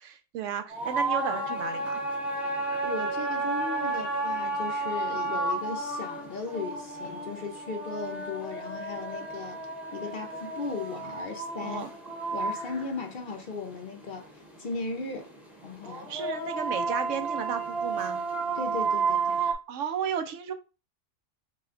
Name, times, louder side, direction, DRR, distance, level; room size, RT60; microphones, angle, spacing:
voice 1, 0.0-2.0 11.6-11.9 16.1-18.2 19.4-20.5, right 8 dB, 80° right, 1.0 m, -34 dB
sound 1, 0.7-19.5, right 3 dB, ahead, 0.7 m, -32 dB
voice 2, 2.8-9.6 9.9-11.8 12.3-14.3 14.6-15.3 15.6-16.1 18.5-19.4, left 4 dB, 55° left, 0.6 m, -37 dB
4.1 x 2.2 x 3.8 m
omnidirectional pair, 1.3 m